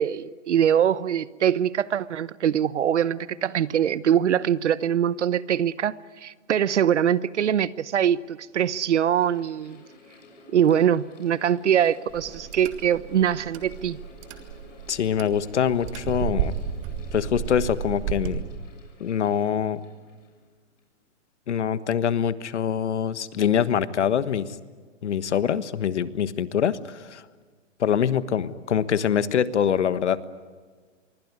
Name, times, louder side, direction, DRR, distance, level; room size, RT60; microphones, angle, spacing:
voice 1, 0.0-5.9 6.2-9.8 10.5-14.0, right 9 dB, 65° right, 1.0 m, -23 dB
Mechanical fan, 8.4-21.0, left 3 dB, 85° left, 7.2 m, -51 dB
sound 1, 12.1-18.4, right 10 dB, 25° right, 1.8 m, -33 dB
voice 2, 14.9-16.5 17.1-18.4 19.0-19.8 21.5-24.5 25.0-27.2 27.8-30.2, left 8 dB, 65° left, 1.4 m, -24 dB
25.5 x 23.5 x 9.7 m
hypercardioid pair, 165°, 37 cm